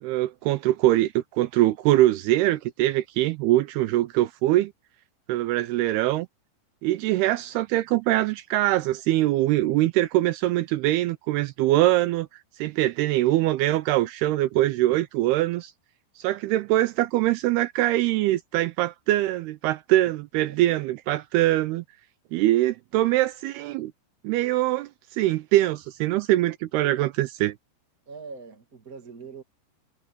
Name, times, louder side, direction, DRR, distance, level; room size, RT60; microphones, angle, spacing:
voice 1, 0.0-4.7 5.3-6.3 6.8-12.3 12.6-15.7 16.2-21.8 22.3-23.9 24.2-27.6, right 16 dB, 85° right, 2.3 m, -23 dB
voice 2, 28.1-29.4, right 5 dB, 35° right, 1.4 m, -42 dB
omnidirectional pair, 5.2 m